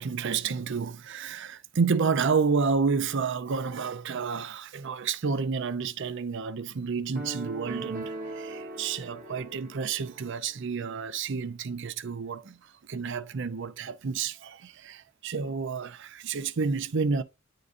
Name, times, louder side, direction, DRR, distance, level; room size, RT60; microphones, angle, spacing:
voice 1, 0.0-17.2, right 5 dB, 60° right, 0.5 m, -30 dB
sound 1, 7.1-10.4, right 2 dB, 45° right, 0.9 m, -39 dB
9.6 x 3.9 x 2.5 m
head